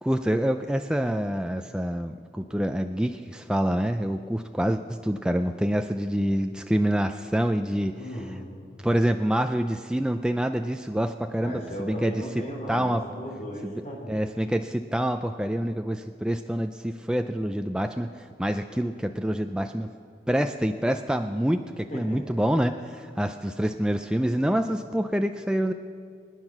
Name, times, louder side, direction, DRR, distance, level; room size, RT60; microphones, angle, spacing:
voice 1, 0.0-8.0 8.8-12.2 12.7-13.0 13.6-13.7 14.1-19.9 20.3-25.7, equal, 5° right, 6 dB, 0.4 m, -26 dB
voice 2, 7.9-8.5 11.4-14.1 21.9-22.2, equal, 40° left, -4 dB, 3.4 m, -36 dB
23.5 x 9.7 x 6.0 m, 2.2 s
head